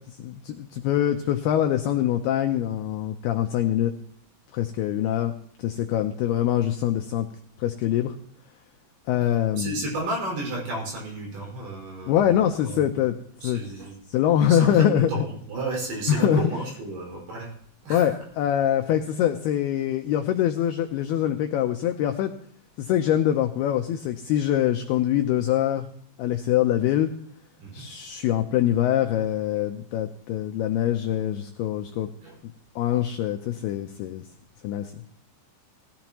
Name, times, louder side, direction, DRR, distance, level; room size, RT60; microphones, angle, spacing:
voice 1, 0.2-3.9 4.5-5.3 5.6-7.3 7.6-8.1 9.1-9.8 12.1-13.1 13.4-13.6 14.1-15.1 16.1-16.4 17.9-22.3 22.8-25.9 26.2-27.1 27.7-32.1 32.8-34.2 34.6-34.9, left 11 dB, 85° left, 6 dB, 2.2 m, -24 dB
voice 2, 9.5-12.9 13.4-14.0 14.5-17.5 17.8-18.2 27.6-27.9 32.2-32.4, right 2 dB, 60° right, -2 dB, 7.1 m, -33 dB
18.5 x 13.5 x 3.0 m, 0.62 s
omnidirectional pair, 5.4 m